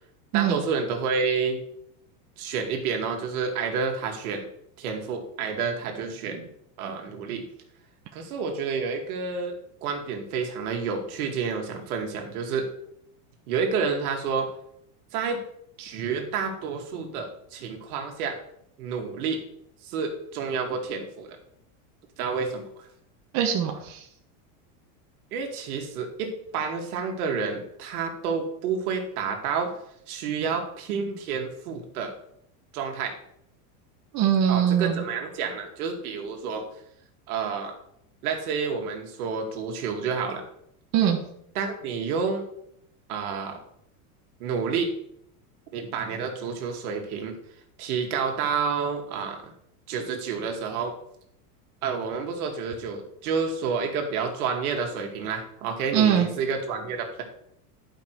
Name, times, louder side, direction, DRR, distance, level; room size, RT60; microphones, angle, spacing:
voice 1, 0.3-1.6 2.4-4.4 4.8-6.5 6.8-7.4 8.1-12.7 13.5-14.5 15.1-15.4 15.8-18.4 18.8-19.4 19.8-21.4 22.2-22.9 25.3-29.7 30.1-32.1 32.7-33.2 34.5-36.7 37.3-37.7 38.2-40.4 41.6-42.4 43.1-43.6 44.4-44.9 45.7-47.4 47.8-49.4 49.9-50.9 51.8-57.2, right 5 dB, 75° right, 3 dB, 2.2 m, -29 dB
voice 2, 23.3-24.0 34.1-35.0 40.9-41.2 55.9-56.3, right 9 dB, 40° right, 1 dB, 1.3 m, -22 dB
10.5 x 5.4 x 4.6 m, 0.72 s
supercardioid pair, 140°, 44 cm